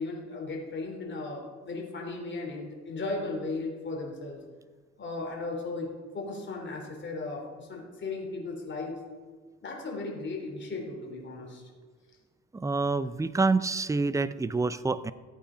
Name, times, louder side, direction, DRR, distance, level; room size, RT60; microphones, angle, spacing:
voice 1, 0.0-4.4 5.0-5.9 6.1-8.9 9.6-11.6, left 3 dB, 40° left, -1 dB, 3.3 m, -36 dB
voice 2, 12.5-15.1, right 3 dB, 10° right, 15 dB, 0.5 m, -27 dB
14.5 x 8.6 x 5.1 m, 1.5 s
cardioid pair, 90°, 30 cm